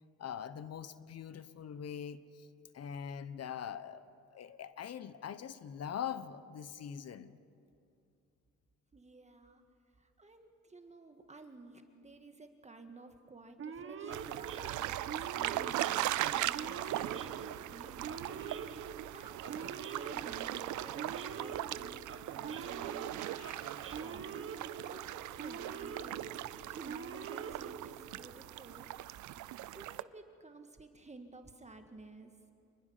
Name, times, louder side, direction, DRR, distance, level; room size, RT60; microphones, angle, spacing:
voice 1, 0.2-2.5 2.7-4.1 4.3-7.4 23.2-24.0, left 8 dB, 55° left, 14 dB, 1.0 m, -43 dB
voice 2, 8.9-9.6 10.0-18.1 19.0-22.1 22.3-23.2 23.8-24.5 24.8-26.3 26.6-28.9 29.7-32.3, right 2 dB, 20° right, 6 dB, 1.7 m, -53 dB
Male speech man speaking / Siren, 13.6-28.3, right 6 dB, 45° right, 1.5 m, -45 dB
sound 1, 14.1-30.0, right 15 dB, 75° right, 0.6 m, -39 dB
27.5 x 20.5 x 5.7 m, 2.6 s
cardioid pair, 90°, 30 cm